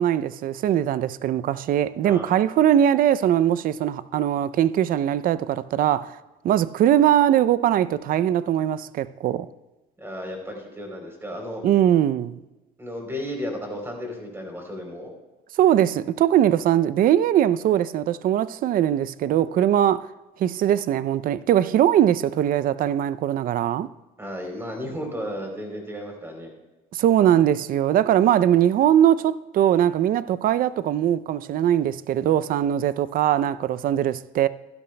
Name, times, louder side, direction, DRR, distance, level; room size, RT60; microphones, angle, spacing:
voice 1, 0.0-6.2 6.4-9.5 11.6-12.4 15.6-20.1 20.4-23.9 26.9-34.5, right 11 dB, 55° right, 0.5 m, -21 dB
voice 2, 2.0-2.4 10.0-11.6 12.8-15.1 24.2-26.5, equal, 15° right, 3.4 m, -34 dB
15.5 x 12.0 x 2.2 m
cardioid pair, 110°, 17 cm